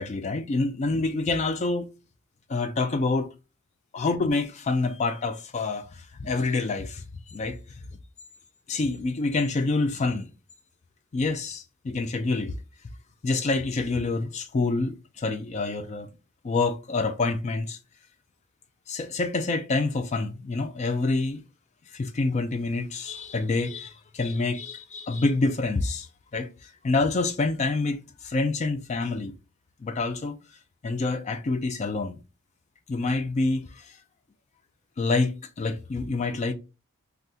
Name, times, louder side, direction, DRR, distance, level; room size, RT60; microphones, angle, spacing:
voice 1, 0.0-1.9 2.5-3.3 3.9-7.0 7.3-7.6 8.7-10.3 11.1-12.6 13.2-16.1 16.4-17.8 18.9-21.4 21.9-29.3 29.8-30.4 30.8-32.2 32.9-34.0 35.0-36.5, left 3 dB, 30° left, 0.3 m, -27 dB
2.7 x 2.3 x 3.5 m
head